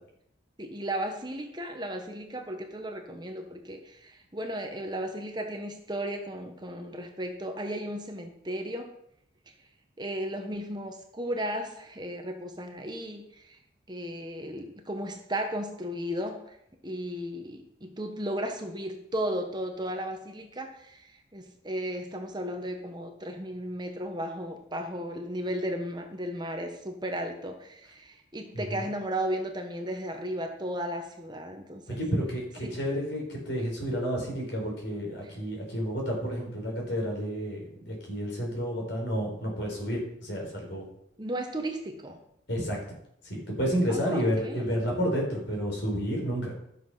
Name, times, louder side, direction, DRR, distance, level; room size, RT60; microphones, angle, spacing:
voice 1, 0.6-8.9 10.0-13.2 13.9-16.4 16.8-32.0 32.6-32.8 35.2-35.3 41.2-42.2 43.9-44.9, right 1 dB, 20° right, 4 dB, 1.2 m, -35 dB
voice 2, 31.9-40.8 42.5-42.8 43.3-46.5, equal, 65° left, -1 dB, 4.7 m, -30 dB
12.5 x 7.0 x 5.7 m, 0.73 s
head